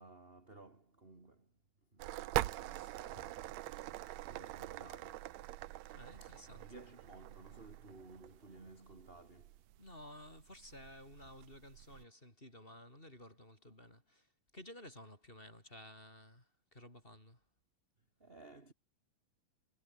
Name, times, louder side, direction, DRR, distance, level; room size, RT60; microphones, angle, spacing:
voice 1, 0.0-1.5 1.8-5.4 5.9-9.7 18.2-18.7, right 2 dB, 20° right, 3.1 m, -57 dB
sound 1, 2.0-12.0, right 16 dB, 70° right, 1.8 m, -44 dB
voice 2, 5.9-6.7 9.8-17.4, left 1 dB, 15° left, 6.4 m, -54 dB
omnidirectional pair, 3.7 m